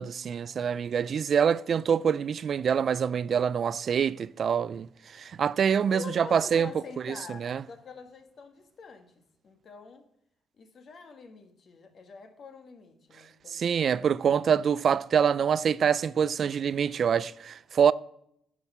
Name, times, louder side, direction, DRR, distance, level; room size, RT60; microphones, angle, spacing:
voice 1, 0.0-4.9 5.1-6.7 7.4-7.6 13.5-17.9, right 7 dB, 55° right, 0.3 m, -25 dB
voice 2, 5.9-10.1 10.6-14.2, left 5 dB, 55° left, 1.6 m, -46 dB
11.0 x 6.2 x 5.5 m
cardioid pair, 90°, 0 cm